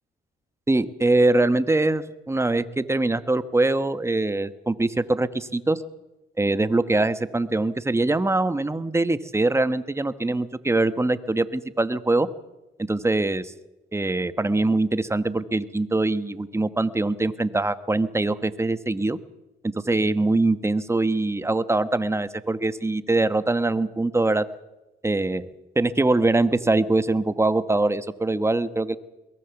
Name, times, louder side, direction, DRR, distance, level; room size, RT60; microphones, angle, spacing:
voice 1, 0.7-5.8 6.4-12.3 12.9-13.5 13.9-19.2 19.6-24.4 25.0-25.5 25.7-29.0, right 2 dB, 15° right, 13 dB, 1.1 m, -23 dB
22.5 x 18.5 x 7.1 m, 1.0 s
cardioid pair, 90°, 20 cm